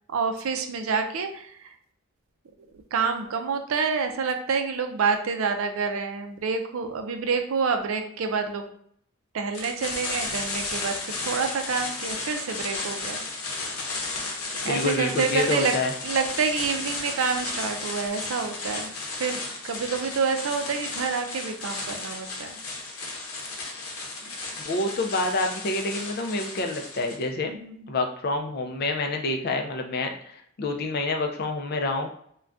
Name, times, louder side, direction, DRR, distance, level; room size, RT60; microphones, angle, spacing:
voice 1, 0.1-1.7 2.9-8.6 9.3-11.0 11.2-13.2 14.6-15.7 16.0-18.9 19.2-22.6 27.4-27.9, right 5 dB, 70° right, 6 dB, 0.4 m, -28 dB
sound 1, 9.5-27.2, left 3 dB, 85° left, 0.7 m, -34 dB
voice 2, 14.6-15.9 24.6-27.5 27.9-30.3 30.6-32.1, left 2 dB, 45° left, 4 dB, 0.4 m, -27 dB
2.5 x 2.2 x 3.4 m, 0.66 s
head